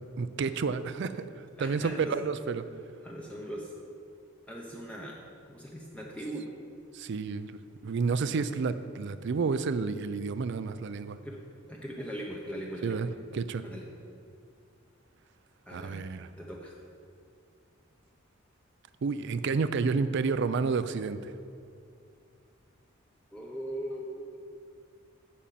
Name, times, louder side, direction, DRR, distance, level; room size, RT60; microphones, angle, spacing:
voice 1, 0.2-1.3 1.6-2.6 6.9-11.2 12.8-13.6 15.7-16.3 19.0-21.3, right 4 dB, 60° right, 12 dB, 0.4 m, -30 dB
voice 2, 1.6-2.2 3.0-3.7 4.5-5.2 5.5-6.5 11.2-11.4 11.7-13.1 13.6-13.9 15.7-16.1 16.4-16.7 23.3-24.3, equal, 5° left, -2 dB, 0.7 m, -39 dB
8.5 x 5.5 x 7.5 m, 2.5 s
head